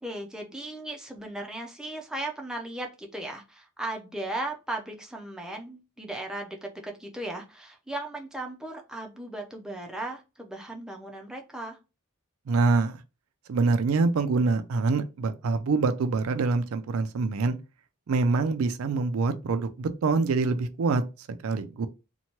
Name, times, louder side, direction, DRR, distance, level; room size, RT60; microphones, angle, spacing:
voice 1, 0.0-11.8, right 1 dB, 5° right, 0.4 m, -37 dB
voice 2, 12.5-13.0 13.5-17.6 18.1-21.0 21.3-21.9, right 4 dB, 70° right, 0.4 m, -25 dB
2.8 x 2.2 x 2.9 m
head